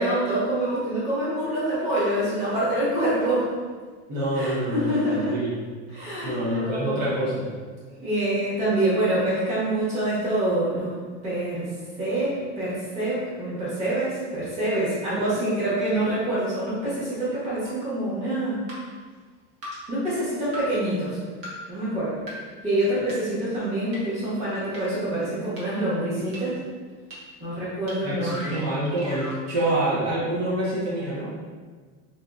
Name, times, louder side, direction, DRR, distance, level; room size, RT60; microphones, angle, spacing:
voice 1, 0.0-3.5 4.3-5.4 5.9-7.1 7.9-10.9 11.2-18.6 19.9-21.2 21.7-22.2 22.6-26.6 27.4-28.5, right 1 dB, 20° right, -10 dB, 1.3 m, -26 dB
voice 2, 4.1-5.5 6.2-7.5 28.0-31.3, right 1 dB, 60° right, -6 dB, 1.2 m, -26 dB
Wooden Xylophone, 17.7-17.8 18.7-18.8 19.6-19.7 20.5-20.6 21.4-21.5 22.3-22.4 23.1-23.2 23.9-24.0 24.7-24.8 25.6-25.7 26.3-26.4 27.1-27.2 27.9-28.0 28.2-29.4, equal, 40° right, 1.2 m, -37 dB
4.8 x 2.7 x 2.4 m, 1.5 s
supercardioid pair, 170°, 35 cm